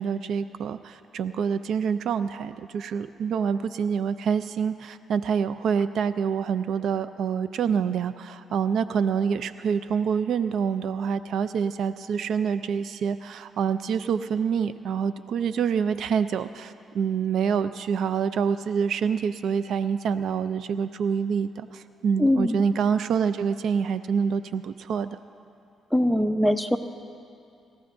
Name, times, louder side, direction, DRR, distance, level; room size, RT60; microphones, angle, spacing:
voice 1, 0.0-25.2, right 6 dB, 70° right, 13 dB, 0.4 m, -26 dB
voice 2, 22.2-22.6 25.9-26.8, left 1 dB, ahead, 8 dB, 0.7 m, -22 dB
26.5 x 14.0 x 2.6 m, 2.5 s
cardioid pair, 90°, 0 cm